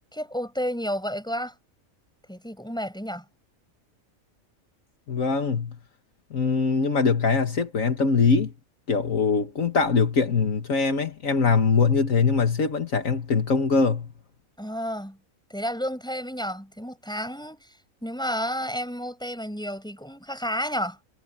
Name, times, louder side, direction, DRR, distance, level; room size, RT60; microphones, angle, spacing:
voice 1, 0.1-1.5 2.3-3.2 14.6-15.2 15.5-17.6 18.0-21.0, equal, 5° left, 8.0 m, -31 dB
voice 2, 5.1-5.8 6.3-8.5 8.9-14.1, left 5 dB, 70° left, 2.0 m, -22 dB
omnidirectional pair, 1.5 m